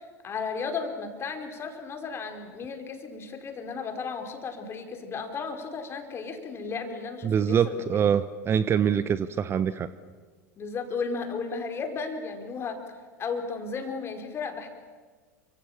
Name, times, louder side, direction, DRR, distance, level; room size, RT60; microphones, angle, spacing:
voice 1, 0.0-7.8 10.6-12.8 13.2-14.7, left 5 dB, 30° left, 5 dB, 4.7 m, -34 dB
voice 2, 7.2-9.9, right 8 dB, 30° right, 15 dB, 1.0 m, -24 dB
30.0 x 25.5 x 7.4 m, 1.5 s
figure-of-eight pair, 80°, 9 cm